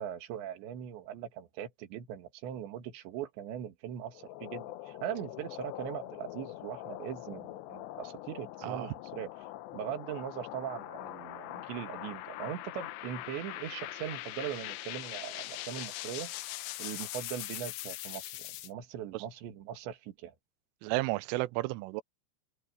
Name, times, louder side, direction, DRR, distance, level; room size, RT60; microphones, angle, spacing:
voice 1, 0.0-9.3 9.7-16.3 16.8-20.4, right 10 dB, 65° right, 4.1 m, -40 dB
sound 1, 4.1-18.7, left 15 dB, 75° left, 2.7 m, -42 dB
voice 2, 20.8-22.0, right 20 dB, 85° right, 3.1 m, -32 dB
omnidirectional pair, 5.8 m